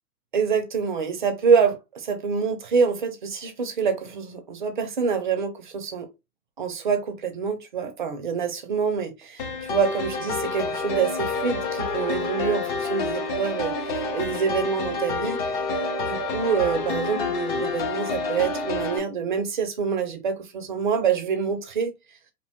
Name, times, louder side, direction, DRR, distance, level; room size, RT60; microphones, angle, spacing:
voice 1, 0.3-6.1 6.6-9.4 9.7-15.4 16.1-21.9, right 6 dB, 35° right, 0.4 m, -26 dB
sound 1, 9.4-19.0, left 3 dB, 35° left, 0.6 m, -28 dB
2.9 x 2.1 x 2.7 m
hypercardioid pair, 135°, 48 cm